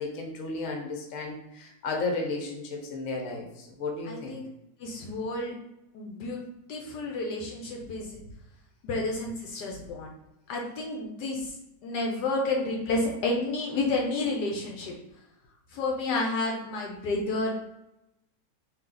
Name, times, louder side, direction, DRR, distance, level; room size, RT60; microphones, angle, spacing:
voice 1, 0.0-4.4, left 3 dB, 55° left, 1 dB, 1.1 m, -33 dB
voice 2, 4.1-4.4 4.8-5.5 5.9-6.4 6.7-8.2 8.8-10.1 10.5-11.5 11.8-14.9 15.7-17.5, left 2 dB, 75° left, 0 dB, 1.2 m, -30 dB
3.2 x 2.8 x 3.7 m, 0.89 s
omnidirectional pair, 1.9 m